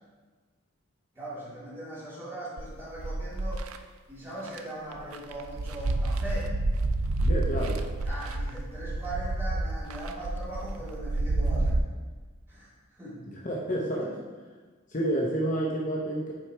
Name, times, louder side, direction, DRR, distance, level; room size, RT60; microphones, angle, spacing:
voice 1, 1.1-3.7 4.1-6.5 8.0-11.8 12.5-13.2 14.0-14.1, right 1 dB, 10° right, -9 dB, 2.1 m, -40 dB
sound 1, 2.6-3.8 4.5-4.6 4.9-11.8, right 2 dB, 85° right, 0.5 m, -29 dB
voice 2, 7.2-7.9 13.4-14.1 14.9-16.3, right 1 dB, 35° left, -3 dB, 0.7 m, -29 dB
6.0 x 4.8 x 4.5 m, 1.4 s
head